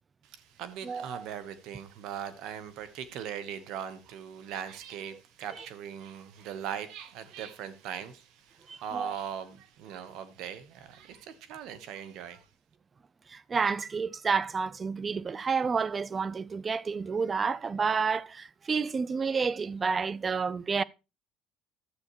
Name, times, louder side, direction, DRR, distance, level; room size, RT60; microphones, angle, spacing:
voice 1, 0.2-12.5, right 9 dB, 75° right, 1.1 m, -40 dB
voice 2, 0.8-1.3 8.7-9.1 13.3-20.8, right 5 dB, 30° right, 0.4 m, -30 dB
11.5 x 7.8 x 3.0 m
supercardioid pair, 90°, 0 cm